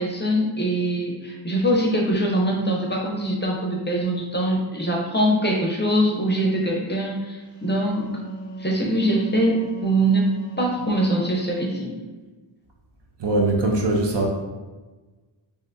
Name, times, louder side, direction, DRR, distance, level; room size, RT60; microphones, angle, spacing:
voice 1, 0.0-8.1 8.6-11.9, right 1 dB, 20° left, -1 dB, 0.5 m, -23 dB
Wind instrument woodwind instrument, 7.6-11.8, right 2 dB, 10° right, 0.9 m, -37 dB
voice 2, 13.2-14.3, right 2 dB, 60° right, 0 dB, 0.7 m, -21 dB
3.3 x 2.6 x 2.5 m, 1.2 s
wide cardioid pair, 65°, 49 cm